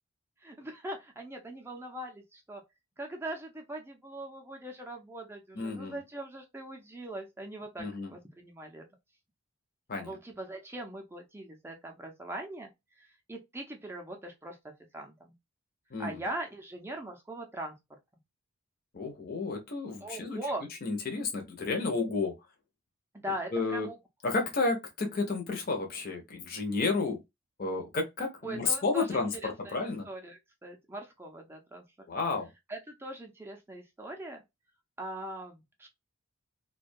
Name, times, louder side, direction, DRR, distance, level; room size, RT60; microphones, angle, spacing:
voice 1, 0.4-2.6 3.0-8.9 10.0-12.7 13.0-14.6 14.9-15.3 16.0-17.7 20.0-20.7 23.1-24.0 28.4-29.8 30.1-31.8 32.7-34.4 35.0-35.9, right 1 dB, 10° right, 0.5 m, -41 dB
voice 2, 5.6-6.0 7.8-8.1 9.9-10.1 15.9-16.2 18.9-20.4 20.8-22.3 23.5-23.9 24.2-27.2 27.6-30.1 32.1-32.5, left 3 dB, 45° left, 0.6 m, -31 dB
2.2 x 2.2 x 2.5 m
head